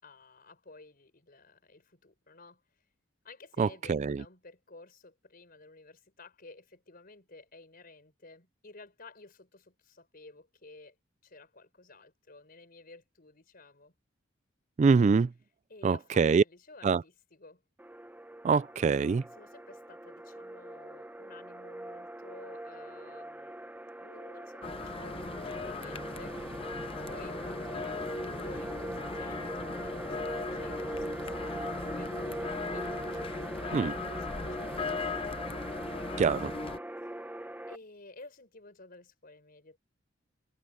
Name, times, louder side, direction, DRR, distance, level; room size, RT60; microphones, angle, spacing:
voice 1, 0.0-2.6 3.2-11.0 11.2-13.9 15.7-17.6 19.3-23.5 24.0-26.4 26.8-35.1 37.7-39.8, left 3 dB, 50° left, 4.9 m, -53 dB
voice 2, 3.6-4.2 14.8-15.3 15.8-16.4 16.8-17.0 18.4-19.2 33.7-33.9 36.2-36.5, right 5 dB, 35° right, 0.3 m, -24 dB
sound 1, 17.8-37.8, right 1 dB, 10° right, 0.7 m, -41 dB
sound 2, 24.6-36.8, left 3 dB, 30° left, 0.8 m, -38 dB
head